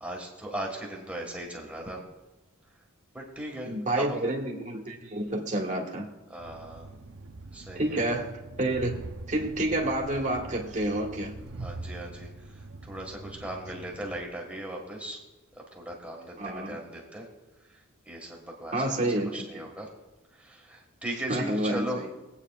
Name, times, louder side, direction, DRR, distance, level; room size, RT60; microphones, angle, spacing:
voice 1, 0.0-2.0 3.1-4.2 6.3-6.9 7.5-8.0 11.6-15.2 15.7-17.3 18.1-19.9 20.4-22.0, right 1 dB, 5° right, -1 dB, 1.8 m, -38 dB
voice 2, 3.6-6.1 7.7-8.3 8.6-8.9 9.3-11.4 16.4-16.8 18.7-19.7 21.3-22.1, right 1 dB, 35° right, 0 dB, 1.6 m, -29 dB
Train, 6.4-14.2, right 2 dB, 65° right, 0.7 m, -43 dB
21.5 x 8.5 x 2.4 m, 1.0 s
head